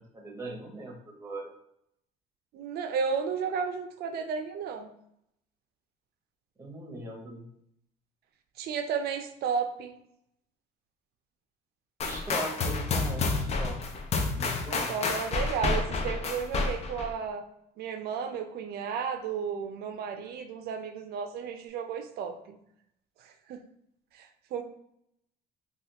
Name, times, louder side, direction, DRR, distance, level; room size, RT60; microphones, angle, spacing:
voice 1, 0.1-1.5 6.6-7.5 12.0-13.8 14.3-14.9, right 1 dB, 15° right, 0 dB, 0.9 m, -39 dB
voice 2, 2.5-4.9 8.6-9.9 14.9-17.4 17.8-22.6 23.2-23.6 24.1-24.6, right 6 dB, 70° right, 6 dB, 0.5 m, -33 dB
sound 1, 12.0-17.1, left 3 dB, 40° left, 0.5 m, -30 dB
3.2 x 2.4 x 2.8 m, 0.75 s
cardioid pair, 110°, 17 cm